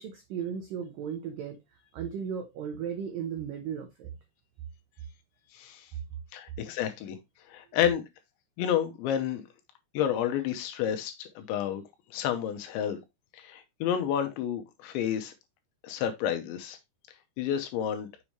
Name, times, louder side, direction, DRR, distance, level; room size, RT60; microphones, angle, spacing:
voice 1, 0.0-1.6 1.9-4.1, right 7 dB, 80° right, 2.0 m, -35 dB
voice 2, 5.5-5.8 6.3-7.2 7.5-8.0 8.6-9.4 9.9-11.8 12.1-13.0 13.3-15.3 15.8-16.8 17.4-18.1, left 9 dB, 80° left, 3.2 m, -30 dB
7.3 x 6.9 x 3.1 m
omnidirectional pair, 5.5 m